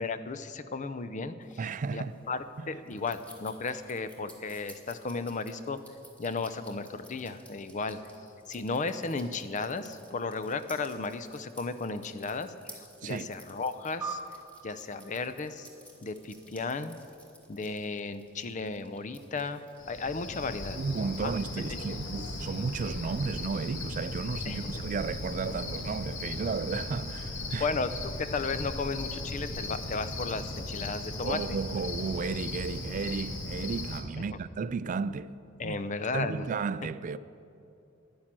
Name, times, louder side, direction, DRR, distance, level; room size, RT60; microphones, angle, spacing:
voice 1, 0.0-1.6 1.9-5.8 6.2-14.2 14.6-15.7 16.0-16.9 17.5-20.8 21.2-21.3 21.7-22.0 24.5-24.6 27.6-27.9 28.2-31.4 31.7-31.8 35.6-36.5, left 4 dB, 40° left, 0.5 m, -34 dB
sound 1, 1.4-20.0, equal, 5° left, 1.7 m, -56 dB
voice 2, 1.6-2.1 2.6-2.7 13.0-13.3 20.8-27.7 31.2-35.3 35.6-37.2, right 4 dB, 40° right, 0.3 m, -33 dB
sound 2, 14.0-16.7, right 4 dB, 10° right, 1.0 m, -43 dB
Cricket, 19.8-34.0, left 2 dB, 70° left, 1.6 m, -37 dB
10.5 x 10.0 x 7.5 m
head